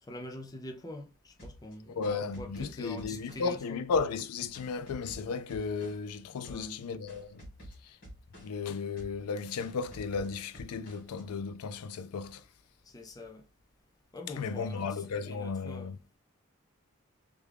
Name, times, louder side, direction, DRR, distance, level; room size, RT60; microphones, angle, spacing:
voice 1, 0.0-2.0 2.4-3.8 6.4-6.8 12.8-13.4 14.1-15.9, left 1 dB, 15° left, 0.4 m, -45 dB
sound 1, 1.4-3.6 3.9-6.2 6.4-6.8 7.1-8.7 9.0-9.3 9.6-11.2, equal, 50° left, 2.0 m, -50 dB
voice 2, 1.9-7.4 7.8-8.0 8.4-12.4 14.4-16.0, left 5 dB, 90° left, 0.4 m, -34 dB
3.4 x 2.3 x 3.3 m
head